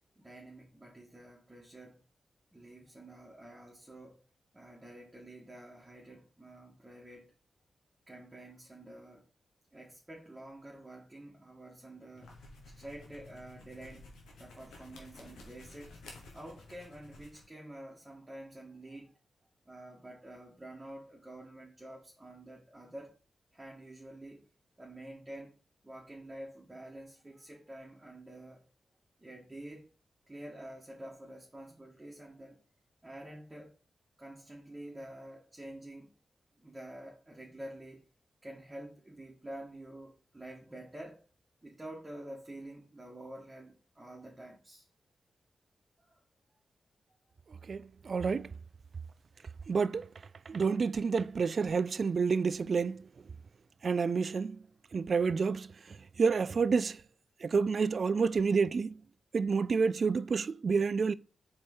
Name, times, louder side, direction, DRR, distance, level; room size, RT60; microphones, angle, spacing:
voice 1, 0.2-2.0 2.5-4.2 4.5-7.3 8.1-9.2 9.7-12.3 12.8-14.0 14.4-15.9 16.3-19.1 19.7-23.1 23.5-24.5 24.8-25.5 25.8-28.6 29.2-29.9 30.3-32.6 33.0-33.7 34.2-36.1 36.6-38.0 38.4-41.2 41.6-44.8 46.1-46.2, right 1 dB, 20° right, 1.8 m, -48 dB
sound 1, 12.1-17.5, left 2 dB, 85° left, 1.5 m, -53 dB
voice 2, 47.7-48.5 49.7-50.1 50.5-53.0 53.8-54.6 54.9-55.7 56.2-57.0 57.4-58.9 59.3-61.1, right 5 dB, 60° right, 0.3 m, -29 dB
4.4 x 4.4 x 5.4 m
supercardioid pair, 45°, 0 cm